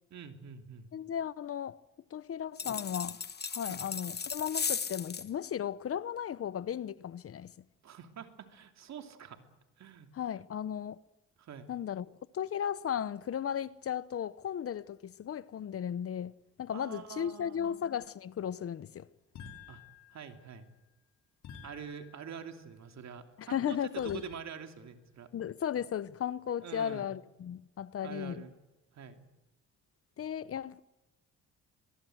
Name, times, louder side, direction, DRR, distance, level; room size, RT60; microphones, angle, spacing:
voice 1, 0.1-0.9 3.7-3.8 7.8-9.4 9.8-10.1 11.4-11.7 16.7-17.8 19.7-19.8 20.1-20.7 21.6-25.3 26.6-27.1 28.0-28.5 28.9-29.2, right 7 dB, 65° right, 3.0 m, -46 dB
voice 2, 0.9-1.8 2.1-3.2 3.5-7.5 10.1-11.0 11.7-12.1 12.3-16.3 16.6-19.1 23.4-24.2 25.3-28.4 30.2-30.8, left 9 dB, 50° left, 0.8 m, -35 dB
sound 1, 2.6-5.3, left 6 dB, 35° left, 1.2 m, -36 dB
sound 2, 19.3-20.6 21.4-22.6 24.0-24.8, left 7 dB, 75° left, 5.8 m, -52 dB
23.5 x 22.0 x 7.9 m
cardioid pair, 90°, 30 cm